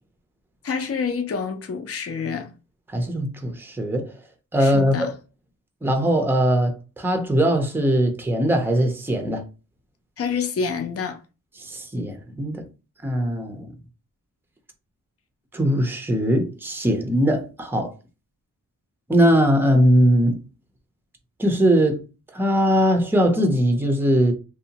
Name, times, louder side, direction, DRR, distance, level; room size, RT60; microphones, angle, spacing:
voice 1, 0.6-2.5 4.6-5.1 10.2-11.2, left 5 dB, 45° left, 0.5 m, -27 dB
voice 2, 2.9-4.1 4.5-5.1 5.8-9.4 11.6-12.7 13.0-13.7 15.5-17.9 19.1-20.4 21.4-22.0 22.3-24.3, equal, 5° right, 0.5 m, -20 dB
2.7 x 2.1 x 2.8 m
wide cardioid pair, 90°, 33 cm